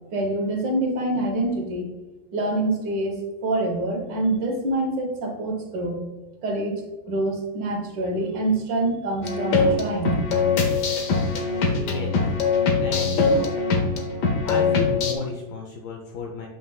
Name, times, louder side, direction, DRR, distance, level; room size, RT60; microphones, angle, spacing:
voice 1, 0.1-1.9 2.3-3.2 3.4-6.0 6.4-6.8 7.1-10.2, right 2 dB, 65° right, 2 dB, 1.8 m, -25 dB
sound 1, 9.2-15.1, left 4 dB, 65° left, 1.3 m, -22 dB
voice 2, 11.7-12.3 12.7-13.6 14.5-16.5, left 3 dB, 80° left, 0 dB, 1.5 m, -33 dB
7.9 x 5.4 x 2.3 m, 1.2 s
omnidirectional pair, 2.1 m